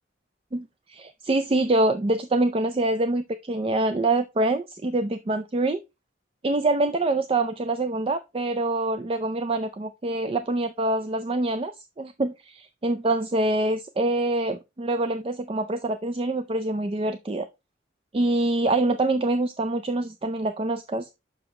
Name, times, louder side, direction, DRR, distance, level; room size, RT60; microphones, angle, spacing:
voice 1, 0.5-5.8 6.4-17.5 18.1-21.1, right 2 dB, 30° right, 0.4 m, -25 dB
6.9 x 6.0 x 3.2 m
head